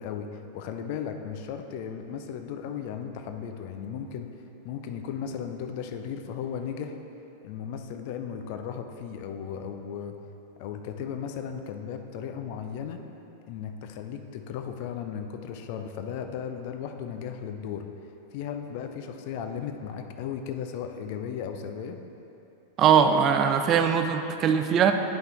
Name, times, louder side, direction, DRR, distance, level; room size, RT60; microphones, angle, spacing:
voice 1, 0.0-4.3 4.6-7.0 7.4-10.2 10.6-13.0 13.5-17.9 18.3-22.0, left 7 dB, 45° left, 6 dB, 0.5 m, -36 dB
voice 2, 22.8-24.9, right 7 dB, 30° right, 7 dB, 0.4 m, -21 dB
9.0 x 5.5 x 3.7 m, 3.0 s
figure-of-eight pair, 90°, 0 cm